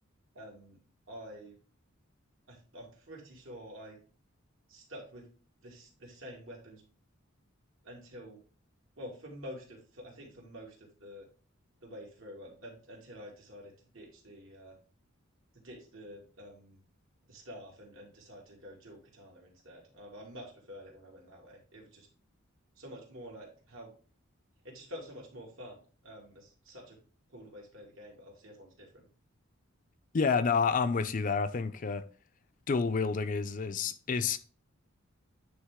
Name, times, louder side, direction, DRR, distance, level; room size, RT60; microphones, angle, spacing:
voice 1, 0.3-0.8 1.1-1.6 2.5-4.0 4.7-5.3 5.6-6.8 7.8-8.4 9.0-11.3 11.8-14.8 15.5-16.8 17.2-22.1 22.8-23.9 24.6-27.0 27.3-29.1, equal, 75° right, 2.5 m, -48 dB
voice 2, 30.1-32.1 32.7-34.4, left 5 dB, 40° left, 0.4 m, -29 dB
9.4 x 3.5 x 3.6 m
head